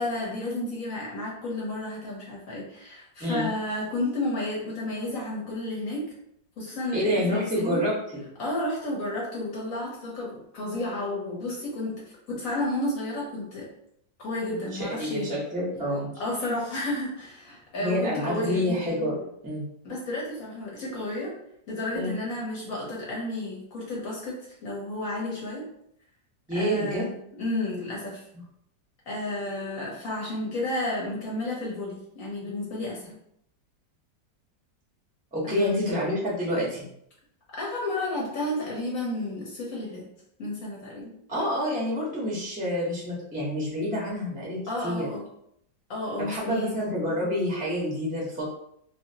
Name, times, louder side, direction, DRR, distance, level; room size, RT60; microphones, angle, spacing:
voice 1, 0.0-6.0 6.6-7.8 8.4-11.9 12.3-13.6 14.2-15.3 16.2-18.6 19.8-21.3 21.7-25.6 26.5-27.1 27.4-28.2 29.1-33.1 35.4-35.9 37.5-40.0 40.4-41.1 44.7-45.2 45.9-46.7, left 1 dB, 55° left, -4 dB, 1.1 m, -32 dB
voice 2, 6.9-7.9 14.7-16.1 17.8-19.6 21.9-22.2 26.5-27.0 35.3-36.8 41.3-44.6 44.8-45.1 46.2-48.4, equal, 5° right, -6 dB, 0.6 m, -28 dB
3.0 x 2.7 x 2.7 m, 0.74 s
omnidirectional pair, 2.0 m